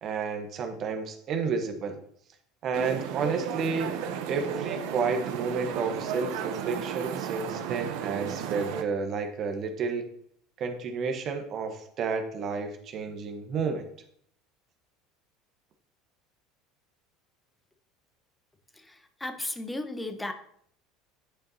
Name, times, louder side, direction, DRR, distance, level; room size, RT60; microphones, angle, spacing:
voice 1, 0.0-2.0 2.6-3.9 4.3-10.1 10.6-13.9, right 5 dB, 45° right, 5 dB, 1.1 m, -31 dB
sound 1, 2.7-8.8, right 8 dB, 70° right, 0.8 m, -34 dB
voice 2, 18.8-20.3, left 2 dB, 10° left, 8 dB, 0.9 m, -35 dB
9.9 x 5.3 x 2.8 m, 0.67 s
supercardioid pair, 95°, 0 cm